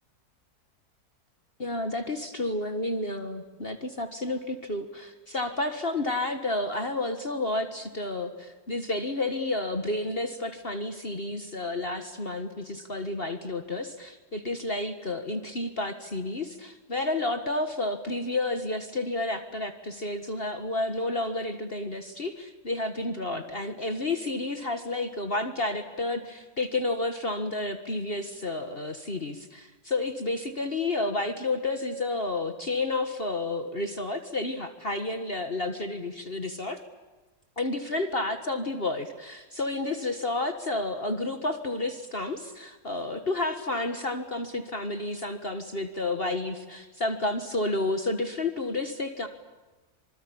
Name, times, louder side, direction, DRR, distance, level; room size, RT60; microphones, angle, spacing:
voice 1, 1.6-36.8 37.6-49.3, left 2 dB, 40° left, 7 dB, 1.9 m, -31 dB
26.5 x 25.0 x 8.8 m, 1.2 s
omnidirectional pair, 1.6 m